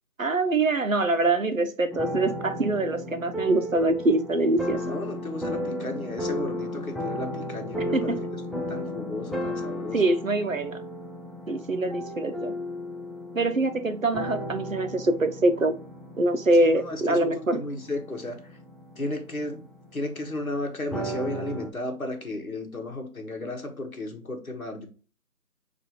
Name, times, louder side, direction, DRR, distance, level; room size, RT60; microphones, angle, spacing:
voice 1, 0.2-4.8 7.9-8.2 9.9-10.8 11.5-12.5 13.3-15.8 16.2-17.6, right 2 dB, 60° right, 0.8 m, -24 dB
sound 1, 1.9-21.7, equal, ahead, 0.4 m, -35 dB
voice 2, 4.8-8.2 8.5-10.0 16.6-18.6 19.0-19.6 19.9-24.9, left 2 dB, 65° left, 1.4 m, -34 dB
6.5 x 2.7 x 2.9 m
figure-of-eight pair, 180°, 46 cm